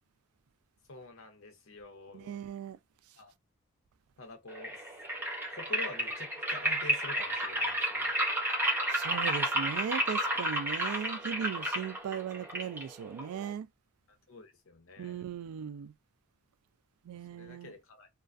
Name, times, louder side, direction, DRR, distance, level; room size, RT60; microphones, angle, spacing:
voice 1, 0.9-2.4 3.2-3.3 4.2-4.9 5.5-8.1 14.1-15.3 17.1-18.1, left 2 dB, 65° left, 0.7 m, -48 dB
voice 2, 2.1-2.8 8.9-13.7 15.0-15.9 17.0-17.7, right 8 dB, 80° right, 0.3 m, -38 dB
sound 1, 4.5-13.5, equal, 10° right, 0.5 m, -32 dB
2.4 x 2.2 x 2.4 m
head